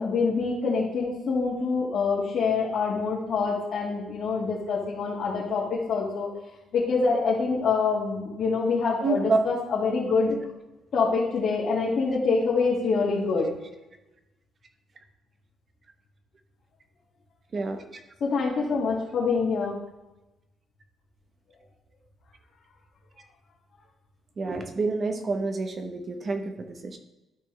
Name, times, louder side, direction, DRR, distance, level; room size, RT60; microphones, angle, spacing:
voice 1, 0.0-6.3 6.7-10.4 10.9-13.5 18.2-19.8, left 4 dB, 65° left, -7 dB, 2.1 m, -25 dB
voice 2, 9.0-9.4 17.5-18.0 24.4-27.0, right 3 dB, 40° right, 5 dB, 1.0 m, -28 dB
12.5 x 4.4 x 3.3 m, 0.99 s
cardioid pair, 90°, 0 cm